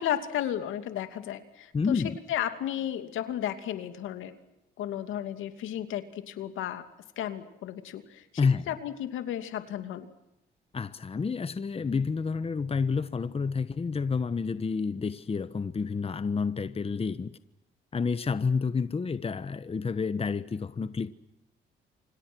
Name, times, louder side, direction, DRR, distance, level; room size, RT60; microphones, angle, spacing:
voice 1, 0.0-2.0 2.3-4.3 4.8-6.8 7.2-8.2 8.7-10.1, left 11 dB, 85° left, 2.6 m, -33 dB
voice 2, 1.7-2.2 8.4-8.7 10.7-17.4 17.9-21.1, left 5 dB, 30° left, 1.2 m, -29 dB
29.0 x 26.5 x 6.3 m
cardioid pair, 90°, 20 cm